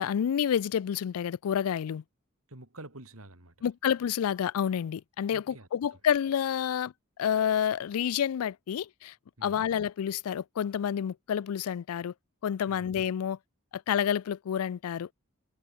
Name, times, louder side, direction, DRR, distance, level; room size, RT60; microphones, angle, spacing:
voice 1, 0.0-2.0 3.6-6.9 7.2-9.1 9.4-12.1 12.4-13.4 13.7-15.1, left 8 dB, 85° left, 0.4 m, -29 dB
voice 2, 2.5-3.7 5.3-6.0 9.4-9.7 12.7-12.9, right 2 dB, 75° right, 3.7 m, -49 dB
head